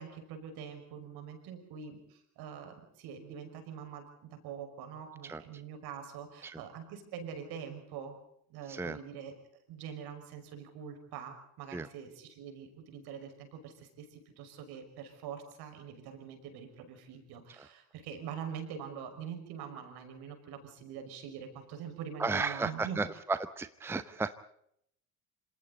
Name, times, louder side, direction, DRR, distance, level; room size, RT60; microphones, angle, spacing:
voice 1, 0.0-8.2 8.5-9.3 9.7-23.0, right 7 dB, 55° right, 6 dB, 5.6 m, -44 dB
voice 2, 22.2-24.3, right 3 dB, 5° right, 14 dB, 0.8 m, -34 dB
27.0 x 26.5 x 4.1 m, 0.70 s
figure-of-eight pair, 60°, 45 cm